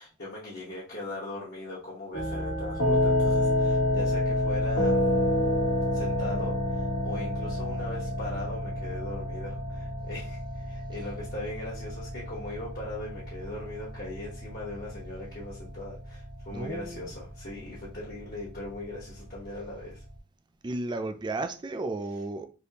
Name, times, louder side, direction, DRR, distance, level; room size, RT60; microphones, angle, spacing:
voice 1, 0.0-5.0 5.9-20.0, left 2 dB, 50° left, 1.1 m, -39 dB
sound 1, 2.1-20.1, left 1 dB, 75° left, 1.2 m, -29 dB
voice 2, 16.5-17.1 20.6-22.5, right 2 dB, 20° right, 0.3 m, -33 dB
3.4 x 2.7 x 2.8 m
head